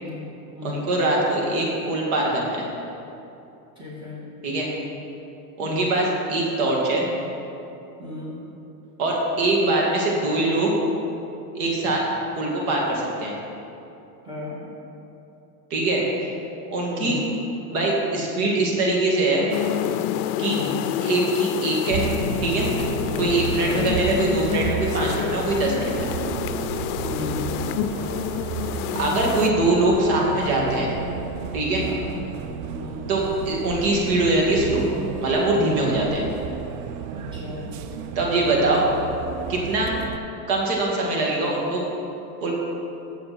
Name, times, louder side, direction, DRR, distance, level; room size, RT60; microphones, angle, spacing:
voice 1, 0.0-0.9 3.8-4.2 5.6-5.9 8.0-8.4 14.2-14.6 16.9-17.3 20.4-20.8 23.1-24.0 27.0-27.7 31.8-32.1 32.7-33.1 37.1-37.6, left 3 dB, 10° right, -6 dB, 2.3 m, -35 dB
voice 2, 0.6-2.6 4.4-4.7 5.6-7.1 9.0-10.7 11.5-12.0 12.4-13.3 15.7-16.0 16.7-17.2 17.7-19.5 20.4-20.6 21.0-22.0 22.4-22.7 23.2-26.1 29.0-30.9 31.5-31.9 33.1-34.8 35.2-36.2 38.2-38.9 39.5-39.9 40.5-41.8 42.4-42.5, right 2 dB, 65° right, -2 dB, 2.5 m, -22 dB
sound 1, 19.5-29.5, left 12 dB, 75° left, 0.5 m, -28 dB
Bus, 21.9-40.2, right 7 dB, 40° right, 0.5 m, -32 dB
13.5 x 7.6 x 4.4 m, 2.8 s
supercardioid pair, 150°, 46 cm